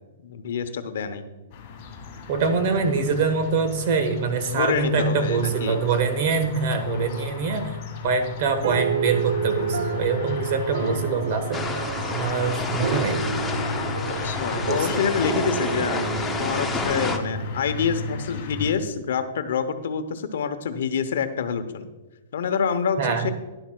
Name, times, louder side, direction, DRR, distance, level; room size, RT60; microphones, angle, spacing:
voice 1, 0.2-1.2 4.5-5.8 14.2-16.0 16.4-21.9 22.3-23.3, left 6 dB, 70° left, 9 dB, 0.8 m, -27 dB
sound 1, 1.5-18.7, left 4 dB, 35° left, 1.7 m, -34 dB
voice 2, 2.3-7.8 8.0-11.6 12.0-13.2 14.1-15.0 23.0-23.3, right 5 dB, 45° right, 7 dB, 1.3 m, -24 dB
sound 2, 8.6-18.4, right 7 dB, 80° right, 0.5 m, -31 dB
sound 3, 11.5-17.2, left 3 dB, 5° left, 0.6 m, -30 dB
12.0 x 10.5 x 2.3 m, 1.1 s
hypercardioid pair, 160°, 0 cm